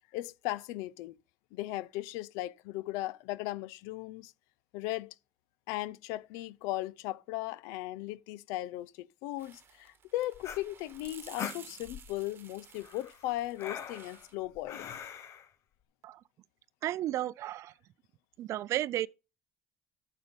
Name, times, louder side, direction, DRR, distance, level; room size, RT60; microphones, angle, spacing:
voice 1, 0.1-1.2 1.5-4.3 4.7-5.1 5.7-14.9, left 16 dB, 90° left, 0.5 m, -37 dB
sound 1, 9.4-14.3, right 7 dB, 45° right, 1.2 m, -54 dB
sound 2, 10.3-12.2 12.8-15.5, left 8 dB, 60° left, 1.1 m, -42 dB
voice 2, 16.8-17.7 18.4-19.1, right 13 dB, 65° right, 0.4 m, -33 dB
9.5 x 6.4 x 5.2 m
cardioid pair, 95°, 5 cm